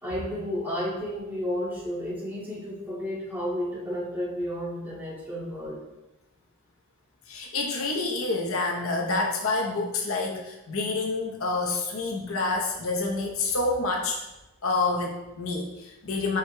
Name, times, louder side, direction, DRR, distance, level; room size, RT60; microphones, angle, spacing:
voice 1, 0.0-5.8, equal, 10° right, -9 dB, 2.2 m, -32 dB
voice 2, 7.3-14.2 14.6-16.4, left 3 dB, 70° left, 0 dB, 0.9 m, -28 dB
9.1 x 4.8 x 2.2 m, 0.99 s
head